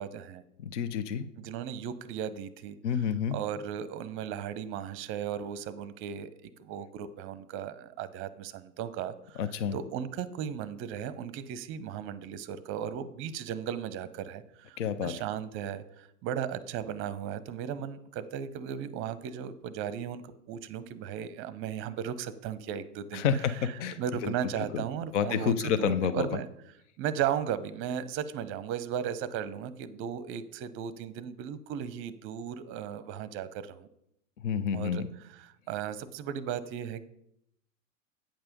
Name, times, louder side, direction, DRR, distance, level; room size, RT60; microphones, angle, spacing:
voice 1, 0.0-0.4 1.4-2.8 3.3-9.4 9.7-26.5 27.0-33.9 34.7-35.0 35.4-37.1, right 9 dB, 30° right, 15 dB, 0.7 m, -36 dB
voice 2, 0.6-1.2 2.8-3.4 9.4-9.8 14.8-15.1 23.1-24.6 25.1-26.3 34.4-35.1, left 7 dB, 60° left, 13 dB, 0.8 m, -29 dB
8.9 x 5.5 x 5.3 m, 0.76 s
hypercardioid pair, 100°, 40 cm